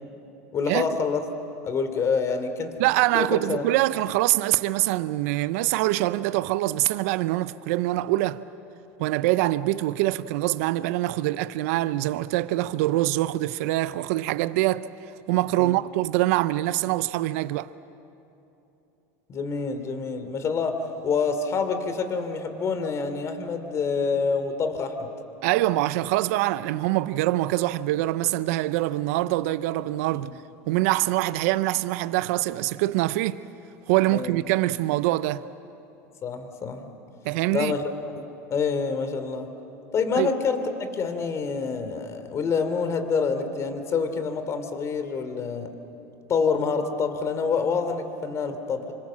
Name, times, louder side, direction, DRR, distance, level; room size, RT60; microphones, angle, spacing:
voice 1, 0.5-1.2 1.6-2.7 3.1-3.6 15.6-15.8 19.3-25.1 30.2-30.4 34.1-34.4 36.2-36.9 37.5-37.8 38.2-39.5 39.9-45.7 46.3-48.9, left 5 dB, 35° left, 2.8 m, -27 dB
voice 2, 2.8-8.4 9.0-14.9 15.3-17.7 25.4-30.3 30.7-33.4 33.9-35.4 37.2-37.7 40.2-40.3, right 16 dB, 70° right, 0.6 m, -24 dB
27.0 x 25.0 x 7.4 m
supercardioid pair, 105°, 8 cm